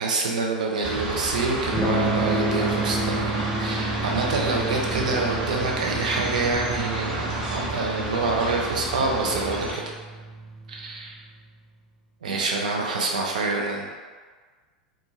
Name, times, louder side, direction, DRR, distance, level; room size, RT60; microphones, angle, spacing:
voice 1, 0.0-3.3 3.6-9.8 10.7-11.2 12.2-13.8, right 3 dB, 70° right, -1 dB, 0.5 m, -26 dB
sound 1, 0.8-9.7, right 2 dB, 55° right, 1.0 m, -30 dB
Electric guitar / Strum, 1.7-11.5, right 2 dB, 5° right, 0.5 m, -31 dB
2.6 x 2.4 x 2.8 m, 1.5 s
figure-of-eight pair, 85°, 4 cm